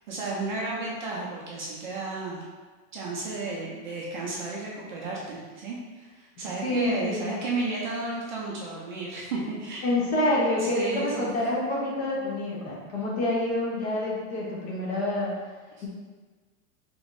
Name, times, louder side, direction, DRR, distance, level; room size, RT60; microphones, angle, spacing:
voice 1, 0.1-2.4 2.9-9.8 10.6-11.3, right 3 dB, 35° right, -4 dB, 0.4 m, -33 dB
voice 2, 6.6-7.3 9.8-15.3, left 1 dB, 45° left, -4 dB, 1.1 m, -27 dB
5.1 x 3.0 x 2.6 m, 1.4 s
supercardioid pair, 180°, 42 cm